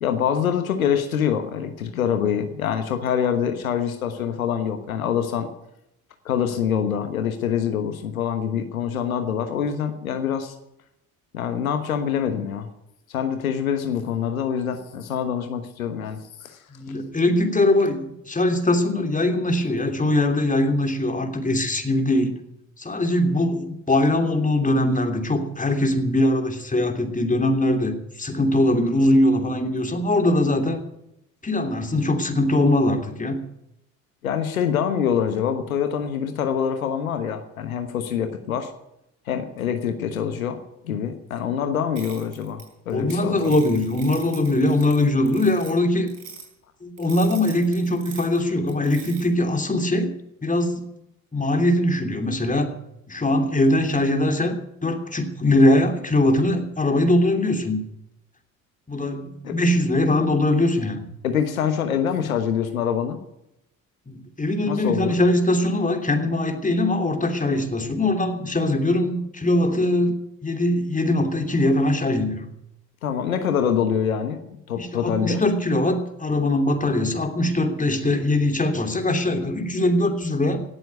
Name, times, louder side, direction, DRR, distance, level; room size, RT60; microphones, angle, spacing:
voice 1, 0.0-5.5 6.2-10.5 11.3-12.7 13.1-16.6 34.2-38.7 39.3-40.6 40.8-43.5 59.4-59.6 61.2-63.2 64.6-65.2 73.0-74.4 74.7-75.4, left 8 dB, 85° left, 7 dB, 1.3 m, -25 dB
voice 2, 16.7-22.4 22.8-30.8 31.4-33.4 42.9-46.1 46.8-50.1 50.4-50.8 51.3-52.8 53.1-57.8 58.9-61.1 64.1-72.5 74.8-80.6, left 1 dB, 20° left, 5 dB, 3.0 m, -21 dB
sound 1, 42.0-43.1 43.4-45.8 46.1-46.4 47.0-48.4 48.7-49.2, right 6 dB, 70° right, 5.1 m, -42 dB
18.0 x 7.9 x 9.5 m, 0.83 s
hypercardioid pair, 50°, 41 cm